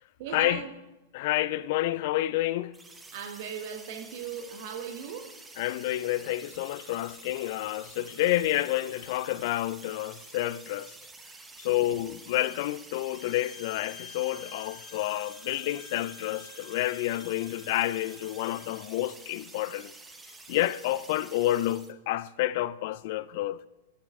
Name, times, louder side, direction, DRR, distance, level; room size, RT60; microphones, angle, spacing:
voice 1, 0.2-0.7 3.1-5.3 11.6-12.0, right 7 dB, 55° right, 1.2 m, -38 dB
voice 2, 1.1-2.8 5.6-10.9 11.6-19.9 20.5-23.6, left 15 dB, 55° left, 0.3 m, -29 dB
sound 1, 2.7-21.9, right 3 dB, 10° right, 0.8 m, -49 dB
Bowed string instrument, 13.1-18.9, left 7 dB, 30° left, 1.6 m, -49 dB
11.0 x 7.5 x 3.6 m
hypercardioid pair, 110°, 0 cm